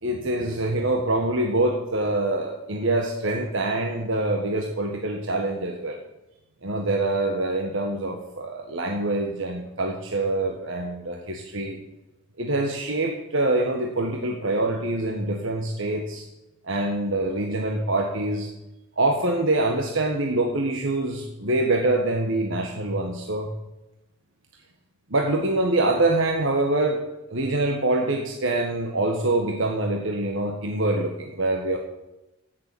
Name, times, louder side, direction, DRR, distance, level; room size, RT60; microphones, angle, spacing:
voice 1, 0.0-6.0 6.6-11.8 12.4-16.2 16.6-18.5 19.0-23.5 25.1-31.8, right 2 dB, 60° right, 2 dB, 1.6 m, -25 dB
16.0 x 7.1 x 8.5 m, 0.96 s
head